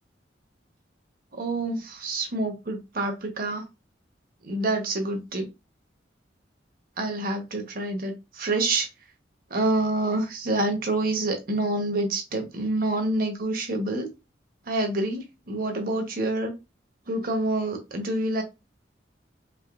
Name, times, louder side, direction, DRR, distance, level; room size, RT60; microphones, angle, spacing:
voice 1, 1.4-3.6 4.4-5.4 7.0-8.9 9.5-14.1 14.7-16.5 17.1-18.4, right 2 dB, 55° right, 1.1 m, -27 dB
5.0 x 2.7 x 2.4 m
head